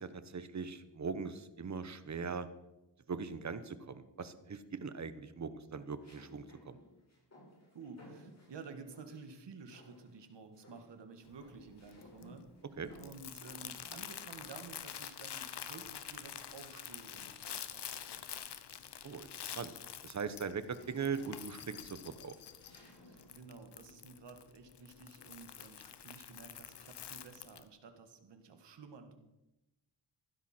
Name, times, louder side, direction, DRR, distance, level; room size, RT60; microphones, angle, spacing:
voice 1, 0.0-2.5 3.1-6.8 12.8-12.9 19.0-19.7 20.0-22.3, right 5 dB, 40° right, 12 dB, 1.1 m, -40 dB
sound 1, 4.1-4.7 6.0-9.3 9.7-10.3 10.5-15.0 16.1-17.5 18.0-18.2 18.6-23.4, equal, 35° left, 5.5 m, -61 dB
voice 2, 7.7-12.4 13.0-17.9 23.1-29.2, right 4 dB, 70° right, 7 dB, 2.0 m, -52 dB
Crumpling crinkling, 11.3-27.7, left 9 dB, 70° left, 1.0 m, -48 dB
15.5 x 12.5 x 4.5 m, 0.96 s
wide cardioid pair, 110°, 43 cm